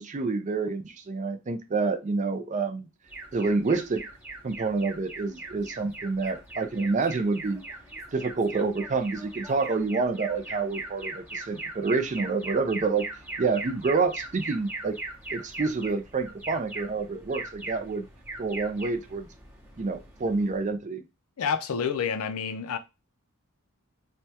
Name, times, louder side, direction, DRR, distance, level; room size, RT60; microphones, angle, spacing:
voice 1, 0.0-2.9 3.3-4.0 4.4-7.6 8.1-13.1 13.4-15.0 15.3-18.1 18.4-19.3 19.8-21.0, right 4 dB, 35° right, 0.4 m, -28 dB
Alarm, 3.1-20.7, right 2 dB, 10° right, 0.8 m, -40 dB
voice 2, 21.4-22.8, left 6 dB, 80° left, 0.5 m, -28 dB
3.3 x 2.2 x 2.8 m
head